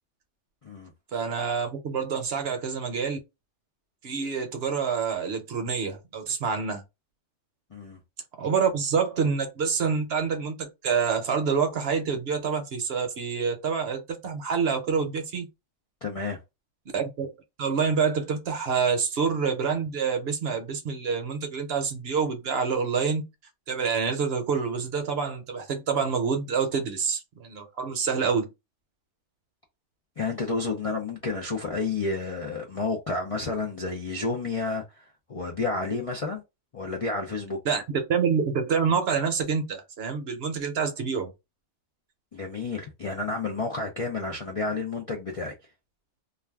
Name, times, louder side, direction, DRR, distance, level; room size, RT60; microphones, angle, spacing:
voice 1, 1.1-3.2 4.0-6.8 8.4-15.5 16.9-17.3 17.6-23.3 23.7-28.5 37.6-41.3, right 6 dB, 60° right, 0.9 m, -27 dB
voice 2, 16.0-16.4 30.2-36.4 36.7-37.6 42.3-45.5, left 3 dB, 50° left, 0.4 m, -30 dB
2.4 x 2.2 x 3.3 m
omnidirectional pair, 1.2 m